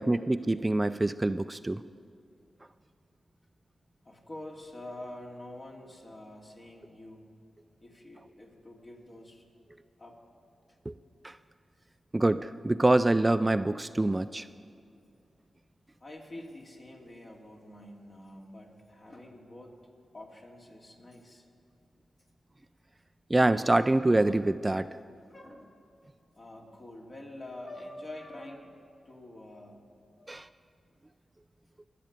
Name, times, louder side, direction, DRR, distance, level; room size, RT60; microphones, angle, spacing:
voice 1, 0.0-1.8 10.9-11.0 11.2-11.3 12.1-14.4 23.3-24.9 30.3-30.4, right 2 dB, 25° right, 13 dB, 0.3 m, -25 dB
voice 2, 4.0-7.3 7.8-9.5 10.0-10.2 10.7-10.8 16.0-19.8 20.1-21.5 25.3-25.8 26.4-28.8 29.0-29.8 30.2-30.3, left 1 dB, 45° left, -1 dB, 2.5 m, -46 dB
21.5 x 7.6 x 5.2 m, 2.5 s
cardioid pair, 45°, 0 cm